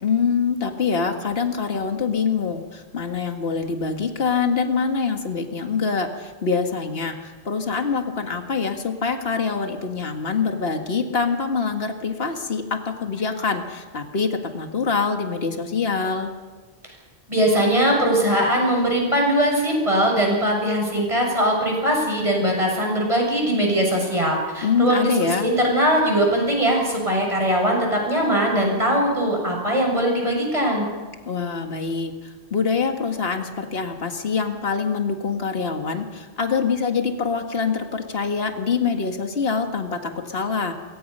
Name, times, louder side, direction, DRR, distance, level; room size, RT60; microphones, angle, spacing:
voice 1, 0.0-16.3 24.6-25.5 31.3-40.7, left 5 dB, 55° left, 4 dB, 2.1 m, -25 dB
voice 2, 17.3-25.1 25.4-30.9, equal, 25° right, 0 dB, 7.1 m, -21 dB
27.0 x 23.0 x 5.6 m, 1.3 s
omnidirectional pair, 1.2 m